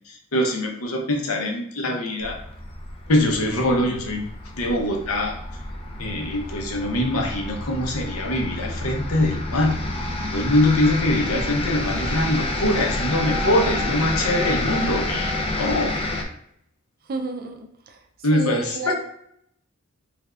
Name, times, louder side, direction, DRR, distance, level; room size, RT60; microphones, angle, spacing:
voice 1, 0.1-2.4 3.1-4.3 4.6-5.3 6.0-9.7 10.3-15.9 18.2-18.9, left 1 dB, 80° left, 2 dB, 0.8 m, -23 dB
sound 1, 2.2-16.2, left 2 dB, 25° left, 0.4 m, -29 dB
voice 2, 17.1-18.0 18.3-18.9, right 3 dB, 45° right, 5 dB, 0.4 m, -31 dB
3.5 x 3.3 x 2.4 m, 0.72 s
head